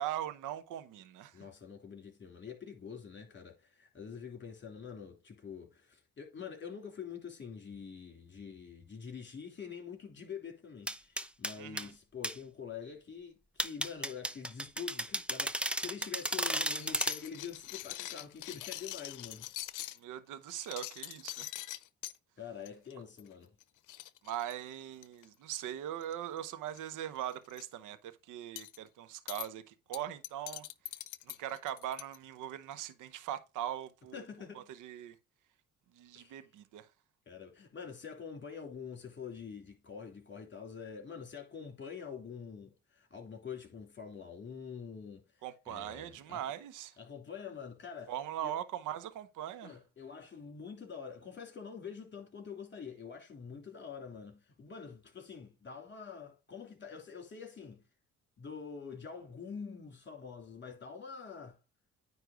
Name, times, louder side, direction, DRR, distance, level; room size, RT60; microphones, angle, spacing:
voice 1, 0.0-1.4 11.6-11.9 20.0-21.5 24.2-30.7 31.3-34.2 34.5-35.2 35.9-36.9 45.4-47.0 48.1-49.7, right 11 dB, 90° right, 0.9 m, -41 dB
voice 2, 1.3-19.5 22.4-23.5 34.1-34.7 36.1-36.4 37.3-46.4 47.0-48.1 48.4-48.5 49.6-57.8 58.4-61.6, left 6 dB, 40° left, 3.2 m, -46 dB
sound 1, 10.9-11.9 12.2-12.4 13.6-17.2, right 1 dB, 5° right, 0.7 m, -34 dB
sound 2, 16.2-20.0 20.5-22.2 22.6-22.9 23.2-23.3 23.6-23.7 23.9-25.2 26.0-26.4 26.7-26.8 27.2-27.6 28.6-28.8 29.3-29.5 29.9-32.2, left 15 dB, 90° left, 0.7 m, -43 dB
9.6 x 3.2 x 5.0 m
cardioid pair, 90°, 30 cm